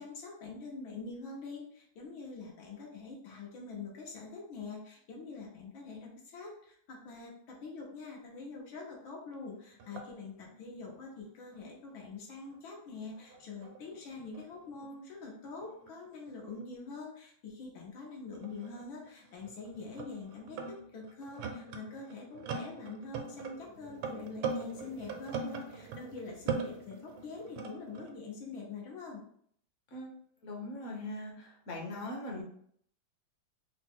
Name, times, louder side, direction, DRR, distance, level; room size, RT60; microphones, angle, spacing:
voice 1, 0.0-29.2, left 4 dB, 80° left, -1 dB, 1.8 m, -45 dB
sound 1, 9.3-9.4 9.7-12.6 12.9-16.7 17.5-17.7 18.3-26.1 26.4-28.1, right 4 dB, 85° right, 1.4 m, -42 dB
sound 2, 22.6-28.5, right 4 dB, 65° right, 0.8 m, -56 dB
voice 2, 30.4-32.4, left 1 dB, 50° left, -1 dB, 1.0 m, -40 dB
4.1 x 2.1 x 4.4 m, 0.64 s
omnidirectional pair, 2.2 m